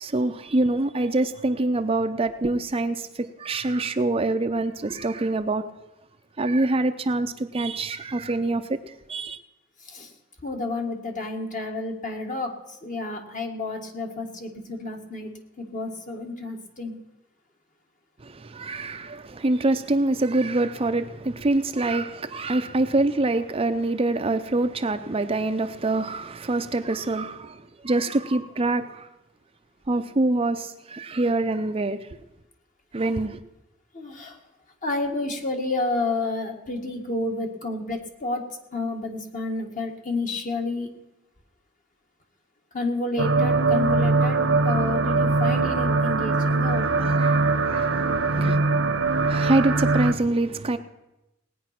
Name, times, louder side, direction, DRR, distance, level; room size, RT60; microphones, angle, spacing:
voice 1, 0.0-5.7 6.4-8.8 9.1-9.4 18.3-29.1 29.9-32.0 32.9-33.4 46.7-48.5 49.1-50.8, right 2 dB, 30° right, 0.6 m, -25 dB
voice 2, 10.4-12.5 12.8-15.3 15.6-17.0 33.9-34.3 34.8-38.4 38.7-40.9 42.7-47.2 48.3-48.5, left 2 dB, 40° left, 1.9 m, -30 dB
sound 1, 43.2-50.1, right 3 dB, 65° right, 0.9 m, -22 dB
18.5 x 9.3 x 6.0 m
head